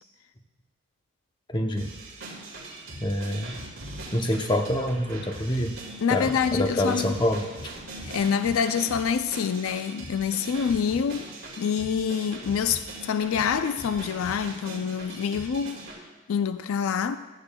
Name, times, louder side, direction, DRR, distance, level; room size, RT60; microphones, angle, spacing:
voice 1, 1.5-1.9 3.0-3.5 4.1-5.8 6.1-7.7, left 1 dB, 20° left, 0.7 m, -26 dB
sound 1, 1.8-16.0, right 2 dB, 65° right, 2.3 m, -41 dB
voice 2, 6.0-7.1 8.0-11.3 11.6-15.8 16.3-17.2, left 7 dB, 75° left, 0.4 m, -26 dB
15.5 x 11.5 x 2.3 m
head